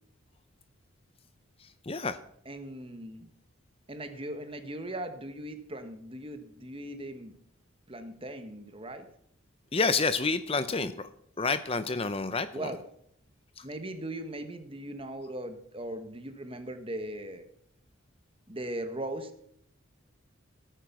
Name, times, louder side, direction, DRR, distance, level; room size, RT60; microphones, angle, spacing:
voice 1, 1.6-2.2 9.7-11.1 11.4-12.7 13.6-13.7, left 4 dB, 25° left, 12 dB, 0.6 m, -29 dB
voice 2, 2.4-3.3 3.9-7.3 7.9-9.1 10.7-10.9 12.5-12.8 13.6-17.4 18.5-19.4, right 1 dB, 25° right, 8 dB, 1.4 m, -39 dB
17.0 x 9.2 x 6.0 m, 0.69 s
head